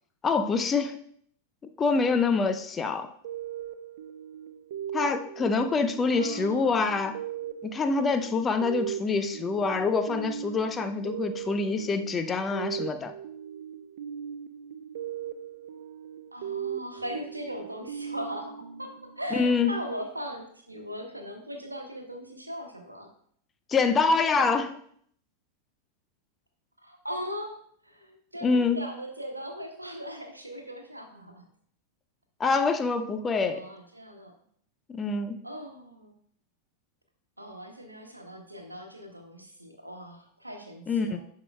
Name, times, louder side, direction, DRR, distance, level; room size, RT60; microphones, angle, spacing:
voice 1, 0.2-1.0 1.8-3.1 4.9-7.2 7.6-13.1 19.3-19.7 23.7-24.8 28.4-28.8 32.4-33.6 34.9-35.4 40.9-41.2, left 4 dB, 20° left, 9 dB, 0.5 m, -26 dB
sound 1, 3.2-19.6, right 9 dB, 55° right, 0.4 m, -39 dB
voice 2, 6.1-7.0 16.3-18.9 19.2-23.1 26.8-31.4 33.5-34.3 35.4-36.1 37.4-41.2, equal, 85° right, 4 dB, 1.1 m, -39 dB
11.0 x 4.8 x 2.3 m, 0.63 s
figure-of-eight pair, 90°, 0 cm